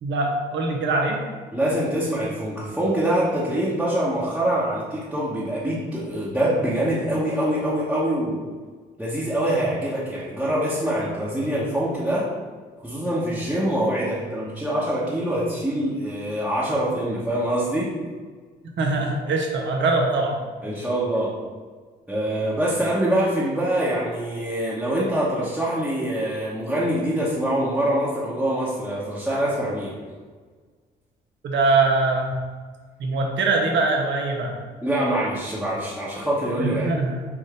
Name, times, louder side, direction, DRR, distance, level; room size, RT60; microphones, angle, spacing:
voice 1, 0.0-1.2 18.8-20.4 31.4-32.4 33.0-34.6 36.6-37.2, right 3 dB, 65° right, 2 dB, 0.9 m, -22 dB
voice 2, 1.5-8.4 9.0-12.3 12.8-18.0 20.6-21.4 22.1-30.0 34.8-37.0, right 1 dB, 5° right, -7 dB, 1.2 m, -24 dB
5.9 x 2.5 x 3.4 m, 1.5 s
hypercardioid pair, 50°, 21 cm